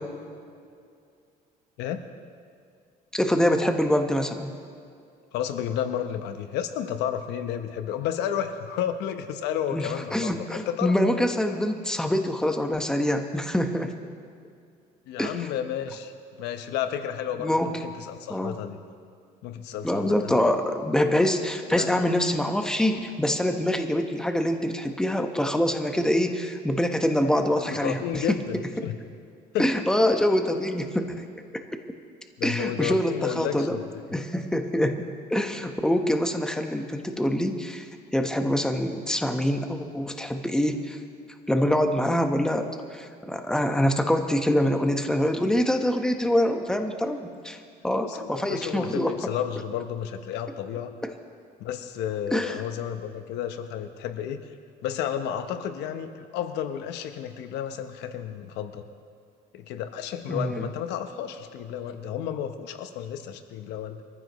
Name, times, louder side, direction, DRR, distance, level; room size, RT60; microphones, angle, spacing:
voice 1, 3.1-4.5 9.7-13.9 15.2-15.4 17.4-17.7 18.3-18.6 19.8-28.4 28.8-28.9 29.6-31.2 32.4-33.8 34.1-37.8 38.1-41.0 41.5-47.6 47.8-49.3 51.0-51.1 52.3-52.6 60.3-60.6, left 1 dB, 5° left, 5 dB, 1.2 m, -25 dB
voice 2, 5.3-10.9 15.1-16.1 16.4-18.8 19.4-20.5 21.7-21.9 27.6-29.0 29.5-29.7 32.4-33.8 48.0-50.9 51.6-54.4 54.8-58.8 59.5-64.0, left 9 dB, 90° left, 8 dB, 1.0 m, -32 dB
23.5 x 14.5 x 3.1 m, 2.3 s
cardioid pair, 110°, 17 cm